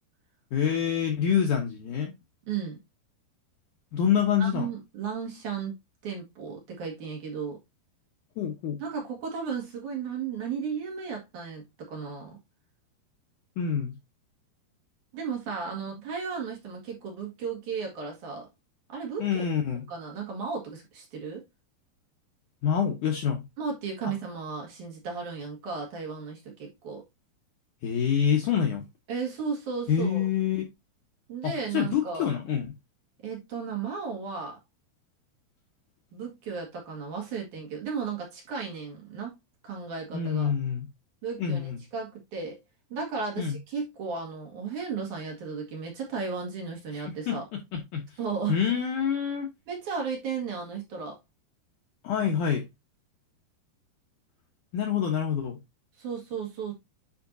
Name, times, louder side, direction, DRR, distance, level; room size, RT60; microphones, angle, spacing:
voice 1, 0.5-2.1 3.9-4.7 8.4-8.8 13.6-13.9 19.2-19.8 22.6-23.4 27.8-28.8 29.9-30.7 31.4-32.7 40.1-40.9 41.4-41.8 43.4-43.6 46.9-48.2 48.5-49.5 52.0-52.6 54.7-55.6, left 8 dB, 70° left, 2.1 m, -26 dB
voice 2, 2.5-2.8 4.4-5.7 6.0-7.6 8.8-12.3 15.1-18.5 18.9-19.4 19.9-21.4 23.6-27.0 29.1-30.3 31.3-32.3 33.2-34.6 36.1-39.4 39.6-40.5 41.2-42.6 42.9-47.4 48.2-48.6 49.7-51.2 56.0-56.7, right 5 dB, 50° right, 3.0 m, -34 dB
10.0 x 5.1 x 2.7 m
omnidirectional pair, 4.9 m